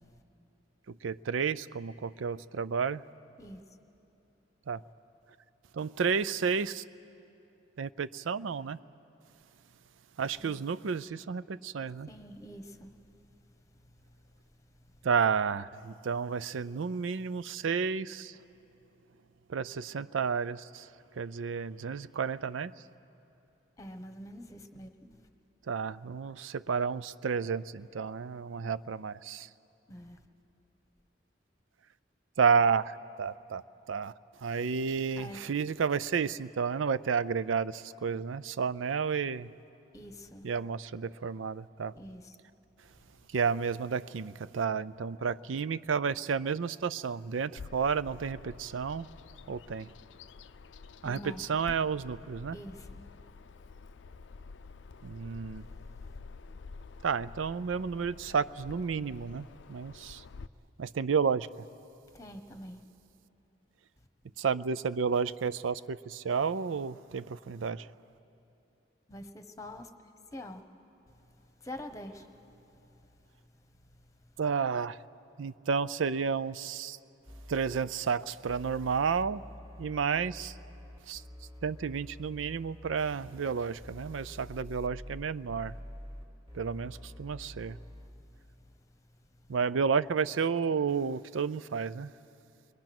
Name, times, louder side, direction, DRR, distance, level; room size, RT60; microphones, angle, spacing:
voice 1, 0.9-3.0 4.7-4.8 5.7-6.8 7.8-8.8 10.2-12.1 15.0-18.4 19.5-20.9 21.2-22.7 25.7-29.5 32.4-33.6 33.9-34.1 34.4-39.5 40.4-41.9 43.3-49.1 49.5-49.9 51.0-52.6 55.0-55.7 57.0-60.2 60.8-61.7 64.4-67.9 74.4-75.0 75.4-77.0 77.5-79.4 79.8-80.6 81.1-81.2 81.6-85.7 86.5-87.8 89.5-92.1, right 6 dB, 90° right, 16 dB, 0.5 m, -31 dB
voice 2, 12.1-13.0 13.4-13.5 14.0-14.1 14.7-14.8 23.8-25.3 29.9-30.2 35.1-35.4 39.9-40.5 41.9-42.4 43.0-43.1 51.0-51.4 52.5-53.0 62.1-62.8 69.1-69.9 70.3-70.6 71.4-72.3 72.8-73.1 73.5-73.6 74.2-74.3 88.6-88.7, left 1 dB, 15° left, 7 dB, 1.1 m, -46 dB
Bird vocalization bird call bird song, 47.6-60.5, left 4 dB, 70° left, 0.5 m, -49 dB
sound 1, 77.3-77.8 78.5-88.1, equal, 30° right, 1.8 m, -47 dB
28.5 x 22.5 x 6.1 m, 2.9 s
head